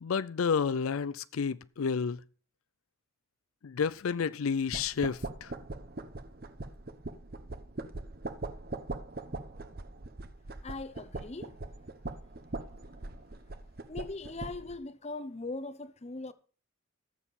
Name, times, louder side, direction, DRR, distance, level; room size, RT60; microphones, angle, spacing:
voice 1, 0.0-2.2 3.6-5.5, left 6 dB, 80° left, 0.5 m, -30 dB
sound 1, 4.7-14.8, right 2 dB, 45° right, 0.9 m, -41 dB
voice 2, 10.6-11.5 13.9-16.3, left 3 dB, 30° left, 0.8 m, -40 dB
18.5 x 7.2 x 4.2 m
head